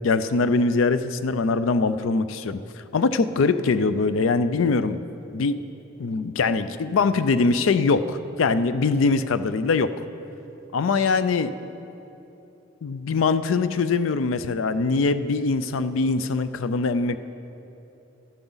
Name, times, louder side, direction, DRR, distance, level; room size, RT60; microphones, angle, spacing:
voice 1, 0.0-2.6 2.9-5.0 5.3-5.6 6.0-9.9 10.7-11.5 12.8-17.2, left 4 dB, 85° left, 13 dB, 0.4 m, -22 dB
13.0 x 11.0 x 4.0 m, 2.9 s
head